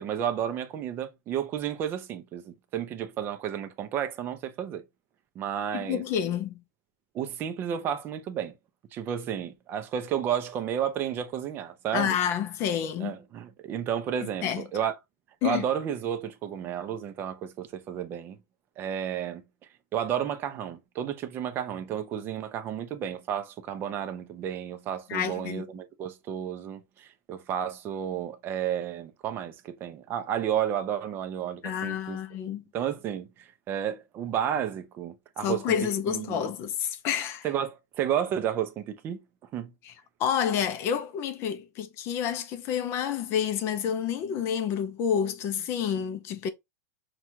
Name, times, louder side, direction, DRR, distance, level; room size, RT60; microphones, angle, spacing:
voice 1, 0.0-4.8 5.3-6.0 7.1-8.5 8.9-12.2 13.0-14.9 15.4-18.4 18.8-19.4 19.9-32.2 32.7-35.8 36.1-36.5 37.4-39.2 39.5-39.7, right 9 dB, 25° right, 0.6 m, -32 dB
voice 2, 5.7-6.6 11.9-13.2 14.4-14.6 15.4-15.6 25.1-25.6 31.6-32.6 35.4-37.4 39.8-39.9 40.2-46.5, left 8 dB, 30° left, 0.5 m, -29 dB
5.9 x 2.3 x 2.8 m
supercardioid pair, 165°, 9 cm